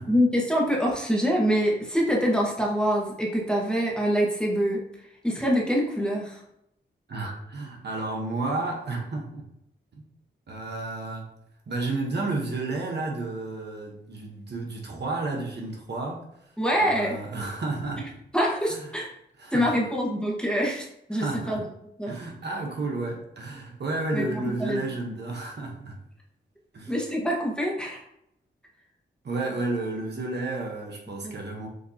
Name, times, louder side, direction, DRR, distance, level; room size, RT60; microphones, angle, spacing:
voice 1, 0.1-4.8 5.2-6.4 16.6-17.2 18.3-19.1 19.5-21.6 22.0-22.1 24.1-24.9 26.9-28.0 31.2-31.4, equal, 5° left, -3 dB, 1.1 m, -25 dB
voice 2, 7.1-9.4 9.9-10.0 10.5-11.3 11.7-18.1 18.6-18.9 19.4-19.7 21.1-21.6 22.1-26.0 26.7-26.9 29.2-31.7, right 2 dB, 60° right, 0 dB, 1.0 m, -32 dB
6.6 x 2.8 x 2.8 m, 0.77 s
cardioid pair, 80°, 19 cm